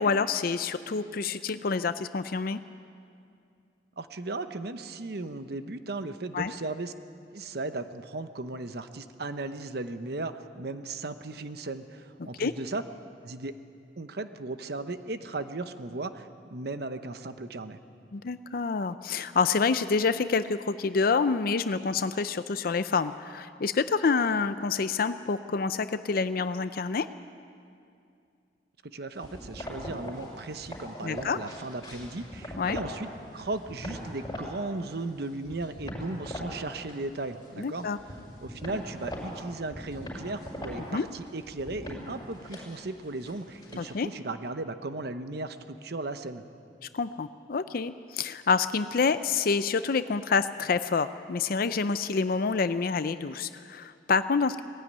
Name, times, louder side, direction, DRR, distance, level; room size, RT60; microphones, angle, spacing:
voice 1, 0.0-2.6 6.3-6.5 12.4-12.5 18.1-27.1 31.0-31.4 32.6-32.8 37.6-38.0 40.9-41.1 43.8-44.1 46.9-54.6, left 4 dB, 55° left, 12 dB, 0.5 m, -27 dB
voice 2, 4.0-6.9 7.3-12.8 13.2-13.5 14.0-17.8 28.8-33.1 33.3-38.2 38.4-46.4, right 2 dB, 65° right, 10 dB, 0.9 m, -36 dB
sound 1, 29.2-33.0 33.3-34.5 34.9-36.5 36.8-37.5 37.7-44.0, left 1 dB, 25° left, 5.5 m, -41 dB
19.0 x 15.5 x 9.5 m, 2.4 s
head